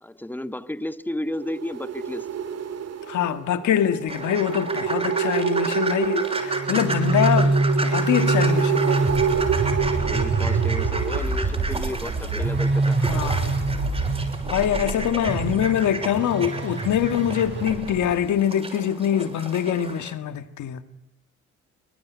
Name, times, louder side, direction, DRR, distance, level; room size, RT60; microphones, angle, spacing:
voice 1, 0.0-2.3 10.0-13.2, left 1 dB, 5° left, 1.2 m, -32 dB
sound 1, 1.3-11.2, right 7 dB, 55° right, 2.4 m, -28 dB
voice 2, 3.1-7.5 7.8-9.3 13.0-13.6 14.4-20.8, left 9 dB, 75° left, 1.8 m, -24 dB
sound 2, 4.1-20.1, right 2 dB, 20° right, 6.3 m, -33 dB
sound 3, 6.5-18.3, right 3 dB, 35° right, 5.8 m, -25 dB
24.5 x 19.5 x 9.5 m
cardioid pair, 90°, 30 cm